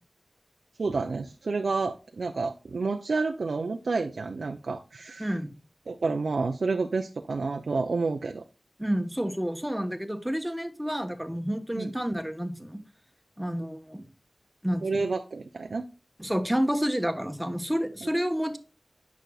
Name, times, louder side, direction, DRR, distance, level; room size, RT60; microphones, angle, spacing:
voice 1, 0.8-5.3 5.9-8.4 11.7-11.9 14.8-15.8 18.0-18.1, right 4 dB, 85° right, 6 dB, 0.5 m, -29 dB
voice 2, 5.2-5.5 8.8-12.8 13.4-14.1 14.6-14.8 16.2-18.6, equal, 5° right, 7 dB, 1.2 m, -29 dB
9.1 x 6.2 x 2.3 m, 0.33 s
wide cardioid pair, 45°, 0 cm